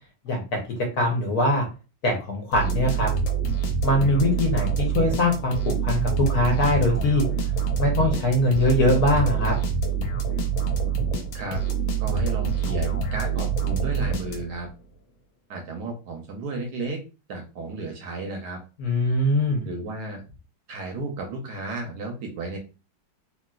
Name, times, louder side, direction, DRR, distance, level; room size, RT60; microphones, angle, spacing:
voice 1, 0.2-0.6 1.0-1.7 2.0-3.1 3.8-7.2 7.8-9.5 18.8-19.7, left 1 dB, 60° left, 1 dB, 1.1 m, -22 dB
sound 1, 2.5-14.7, right 6 dB, 80° left, 1.4 m, -26 dB
voice 2, 12.0-14.7 15.5-17.0 17.3-18.6 19.6-20.2 20.7-22.6, right 2 dB, 70° right, 2 dB, 1.0 m, -33 dB
2.9 x 2.9 x 2.3 m, 0.32 s
omnidirectional pair, 2.1 m